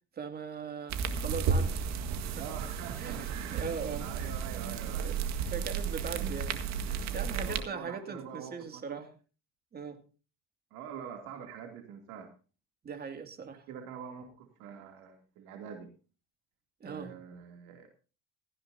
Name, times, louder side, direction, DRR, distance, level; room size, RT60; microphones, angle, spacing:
voice 1, 0.2-1.8 2.2-2.5 3.0-4.1 4.5-5.2 5.5-9.1 9.7-10.0 12.8-13.7 16.8-17.1, right 6 dB, 30° right, 2.4 m, -40 dB
sound 1, 0.9-7.6, right 6 dB, 65° right, 1.8 m, -33 dB
voice 2, 2.3-3.7 4.0-5.1 7.3-9.1 10.7-12.3 13.7-15.9 16.8-17.9, right 7 dB, 80° right, 2.8 m, -45 dB
17.0 x 14.5 x 2.8 m
cardioid pair, 120°, 30 cm